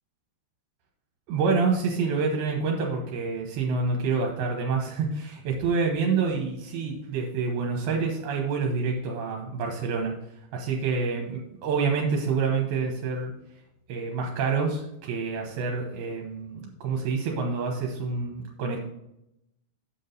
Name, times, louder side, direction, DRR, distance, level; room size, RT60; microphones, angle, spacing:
voice 1, 1.3-10.1 10.5-13.3 13.9-18.8, right 4 dB, 70° right, 1 dB, 2.8 m, -27 dB
8.2 x 6.2 x 4.1 m, 0.83 s
omnidirectional pair, 4.9 m